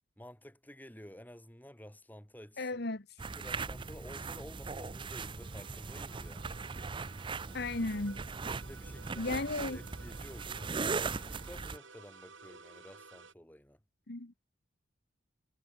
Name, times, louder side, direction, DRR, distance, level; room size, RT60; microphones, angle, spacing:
voice 1, 0.2-2.8 3.2-6.5 8.6-13.8, equal, 10° left, 4.0 m, -52 dB
voice 2, 2.6-3.0 7.5-8.2 9.2-9.8 14.1-14.3, left 2 dB, 55° left, 1.6 m, -35 dB
sound 1, 3.2-11.8, right 4 dB, 25° right, 0.5 m, -39 dB
sound 2, 4.4-13.3, right 4 dB, 75° right, 5.7 m, -56 dB
head